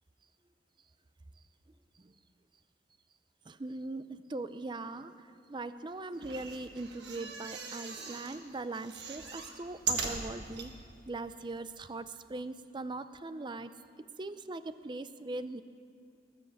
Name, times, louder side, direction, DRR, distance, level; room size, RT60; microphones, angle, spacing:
voice 1, 3.5-10.7 11.1-13.7 14.2-15.6, right 2 dB, 25° right, 12 dB, 0.5 m, -40 dB
sound 1, 6.1-8.4 8.7-10.7 11.3-11.4 11.6-11.7, right 5 dB, 70° right, 1.4 m, -39 dB
19.5 x 7.7 x 7.1 m, 2.3 s
head